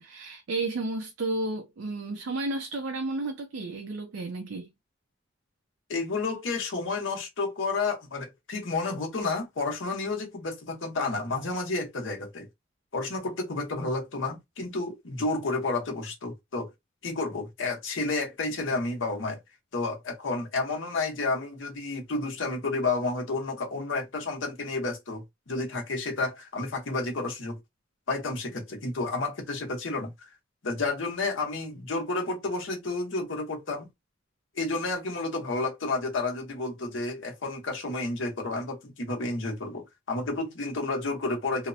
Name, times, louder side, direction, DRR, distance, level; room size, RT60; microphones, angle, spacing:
voice 1, 0.0-4.7, right 2 dB, 90° right, 0.5 m, -32 dB
voice 2, 5.9-12.5 12.9-16.7 17.0-19.4 19.7-27.6 28.1-30.3 30.6-33.9 34.6-41.7, left 3 dB, 75° left, 0.9 m, -31 dB
2.8 x 2.0 x 2.6 m
head